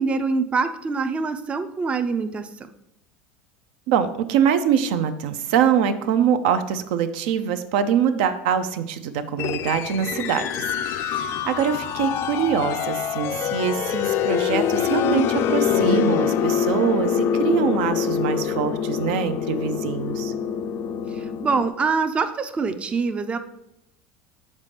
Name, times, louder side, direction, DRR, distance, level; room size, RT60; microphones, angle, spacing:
voice 1, 0.0-2.7 21.1-23.4, right 4 dB, 20° right, 9 dB, 0.4 m, -25 dB
voice 2, 3.9-20.3, right 8 dB, 75° right, 10 dB, 0.5 m, -24 dB
sound 1, 9.4-21.7, left 8 dB, 50° left, 0.4 m, -25 dB
7.3 x 4.2 x 3.2 m, 0.82 s
supercardioid pair, 120°, 6 cm